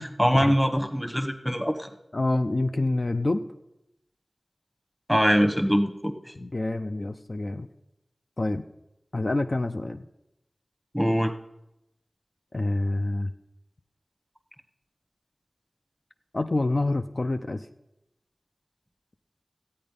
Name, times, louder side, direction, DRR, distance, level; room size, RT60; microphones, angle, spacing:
voice 1, 0.0-1.9 5.1-6.1 10.9-11.3, equal, ahead, 7 dB, 1.1 m, -23 dB
voice 2, 2.1-3.4 6.3-7.7 8.4-8.7 9.1-10.1 12.5-13.3 16.3-17.7, left 2 dB, 50° left, 6 dB, 0.5 m, -27 dB
14.0 x 8.7 x 5.3 m, 0.88 s
wide cardioid pair, 50°, 0 cm